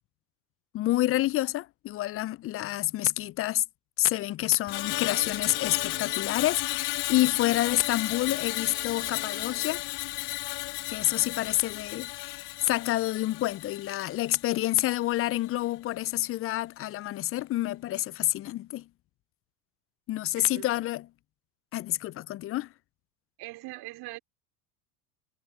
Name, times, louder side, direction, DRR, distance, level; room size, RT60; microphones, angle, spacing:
voice 1, 0.7-3.6 4.0-9.8 10.9-18.9 20.1-21.1 21.7-22.7, left 15 dB, 30° left, 0.4 m, -28 dB
Screech, 4.7-15.0 15.4-15.6, left 22 dB, 60° left, 2.0 m, -34 dB
sound 1, 4.7-6.4 8.2-9.9, right 18 dB, 80° right, 2.6 m, -49 dB
voice 2, 23.4-24.2, right 20 dB, 60° right, 4.2 m, -41 dB
hypercardioid pair, 80°, 44 cm